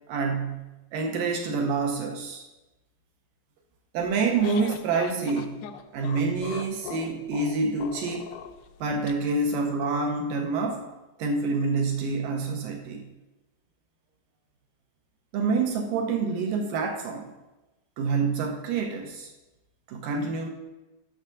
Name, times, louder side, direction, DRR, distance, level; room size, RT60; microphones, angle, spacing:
voice 1, 0.1-0.7 0.9-2.5 3.9-5.6 5.9-8.3 8.8-10.9 11.2-13.1 15.3-17.3 18.0-19.3 19.9-20.5, right 4 dB, 75° right, 3 dB, 2.1 m, -27 dB
sound 1, 4.0-9.1, left 9 dB, 85° left, 2.7 m, -40 dB
7.1 x 6.6 x 6.2 m, 1.0 s
omnidirectional pair, 4.7 m